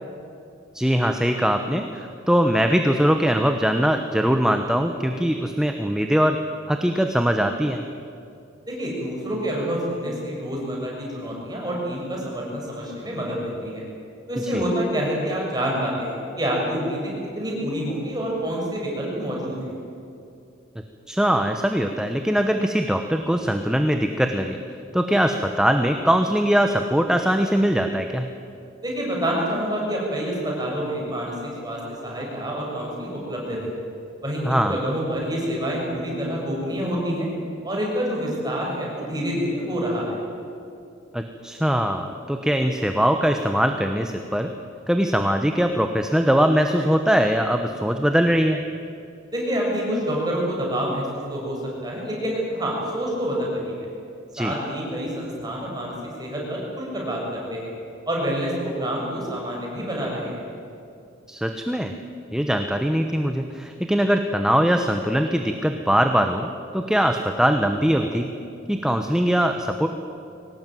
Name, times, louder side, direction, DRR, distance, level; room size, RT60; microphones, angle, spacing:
voice 1, 0.7-6.4 6.7-7.8 14.4-14.6 21.1-24.6 24.9-28.3 34.4-34.8 41.1-44.5 44.9-48.6 54.3-54.5 61.3-61.9 62.3-68.3 68.7-69.9, equal, 5° right, 5 dB, 1.0 m, -21 dB
voice 2, 8.7-13.8 14.3-19.7 28.8-33.7 34.2-34.4 34.7-37.3 37.6-40.2 49.3-53.9 54.4-55.9 56.2-57.7 58.1-60.4, equal, 20° right, -3 dB, 6.9 m, -27 dB
23.5 x 18.5 x 9.3 m, 2.6 s
head